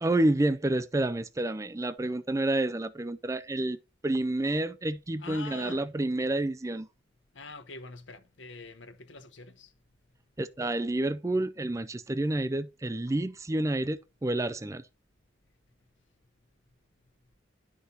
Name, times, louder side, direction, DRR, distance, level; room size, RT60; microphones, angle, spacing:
voice 1, 0.0-3.8 4.0-6.9 10.4-14.8, right 1 dB, 15° right, 0.4 m, -29 dB
voice 2, 5.2-5.9 7.3-9.7, left 3 dB, 85° left, 1.1 m, -45 dB
9.8 x 6.0 x 4.0 m
head